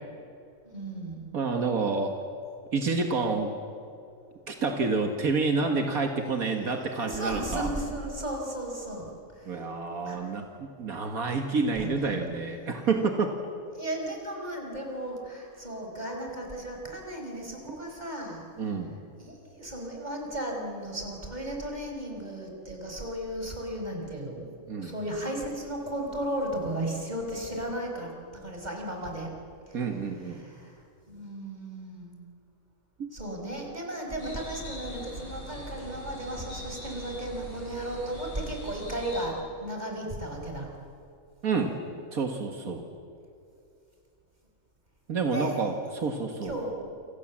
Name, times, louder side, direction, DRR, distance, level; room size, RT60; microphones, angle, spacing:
voice 1, 0.7-1.4 6.6-9.7 10.1-10.3 11.8-12.3 13.7-18.7 19.2-29.3 29.7-30.8 31.1-32.2 33.1-40.7 45.3-45.6 46.4-46.7, right 1 dB, 30° right, 1 dB, 5.3 m, -35 dB
voice 2, 1.3-2.2 2.7-3.5 4.5-7.7 9.5-13.3 18.6-18.9 24.7-24.9 29.7-30.4 33.0-33.1 41.4-41.8 42.1-42.8 45.1-46.6, right 4 dB, 80° right, 4 dB, 2.1 m, -28 dB
sound 1, 34.2-39.3, equal, 85° left, 7.7 m, -42 dB
29.0 x 26.5 x 7.5 m, 2.6 s
omnidirectional pair, 1.5 m